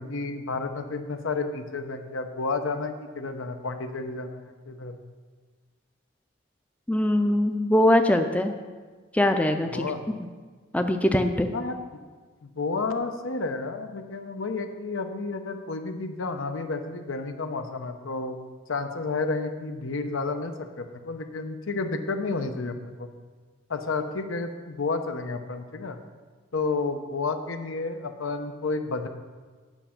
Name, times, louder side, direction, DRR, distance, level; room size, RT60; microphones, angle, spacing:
voice 1, 0.0-4.9 9.7-10.0 11.5-11.8 12.4-18.4 18.7-23.1 23.7-26.0 26.5-29.1, left 3 dB, 90° left, 7 dB, 0.8 m, -31 dB
voice 2, 6.9-8.6 9.1-9.8 10.7-11.5, left 1 dB, 5° left, 6 dB, 0.4 m, -22 dB
9.1 x 6.3 x 5.8 m, 1.5 s
head